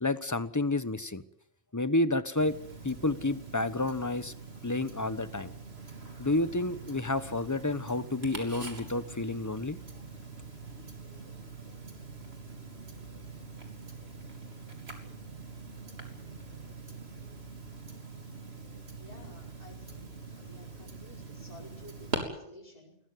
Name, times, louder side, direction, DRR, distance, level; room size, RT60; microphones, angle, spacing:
voice 1, 0.0-1.2 1.7-2.6 2.8-4.3 4.6-5.5 6.2-9.8, left 2 dB, 20° left, 14 dB, 0.9 m, -30 dB
Tick-tock, 2.4-22.2, right 3 dB, 85° right, 3.8 m, -44 dB
voice 2, 19.0-23.0, left 1 dB, 40° left, -5 dB, 5.6 m, -53 dB
22.0 x 17.5 x 9.4 m, 0.74 s
omnidirectional pair, 1.0 m